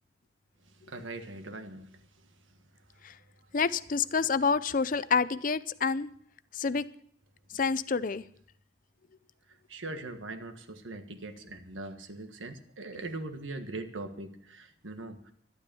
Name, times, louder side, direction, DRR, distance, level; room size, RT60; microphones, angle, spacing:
voice 1, 0.9-1.9 9.7-15.3, right 2 dB, 90° right, 7 dB, 1.5 m, -41 dB
voice 2, 3.5-6.1 6.5-6.9 7.5-8.2, left 5 dB, 45° left, 16 dB, 0.5 m, -28 dB
12.0 x 11.5 x 6.9 m, 0.65 s
head